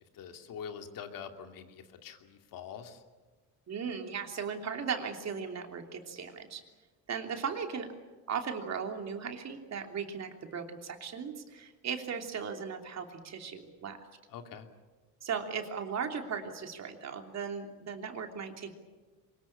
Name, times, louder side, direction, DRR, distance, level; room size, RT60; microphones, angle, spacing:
voice 1, 0.1-3.0 14.3-14.7, left 7 dB, 65° left, 5 dB, 2.8 m, -44 dB
voice 2, 3.7-6.6 7.1-7.9 8.3-14.0 15.2-18.7, right 6 dB, 45° right, 4 dB, 3.2 m, -37 dB
24.0 x 21.5 x 8.7 m, 1.3 s
cardioid pair, 120°, 37 cm